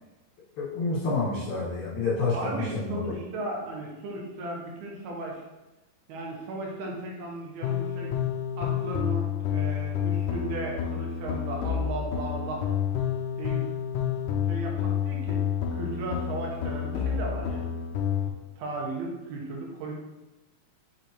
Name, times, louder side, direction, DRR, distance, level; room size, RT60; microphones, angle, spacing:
voice 1, 0.6-3.1, left 3 dB, 60° left, -7 dB, 2.9 m, -28 dB
voice 2, 2.3-5.4 6.1-8.1 8.6-12.7 13.4-13.6 14.5-15.4 15.7-17.8 18.6-19.9, right 2 dB, 80° right, -2 dB, 3.0 m, -35 dB
sound 1, 7.6-18.3, left 9 dB, 85° left, 1.8 m, -29 dB
6.6 x 4.9 x 3.0 m, 1.0 s
omnidirectional pair, 4.5 m